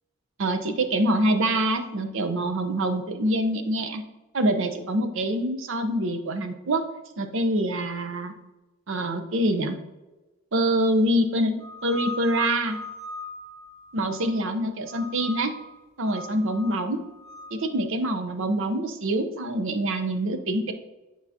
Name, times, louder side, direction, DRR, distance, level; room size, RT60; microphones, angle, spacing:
voice 1, 0.4-4.0 4.3-6.8 7.2-8.3 8.9-9.8 10.5-12.8 13.9-15.5 16.0-17.0 17.5-20.7, right 1 dB, 65° right, 6 dB, 0.7 m, -25 dB
sound 1, 11.6-14.5 14.9-15.6 16.0-17.6, left 2 dB, 30° right, 1.8 m, -39 dB
9.1 x 4.7 x 2.8 m, 1.1 s
head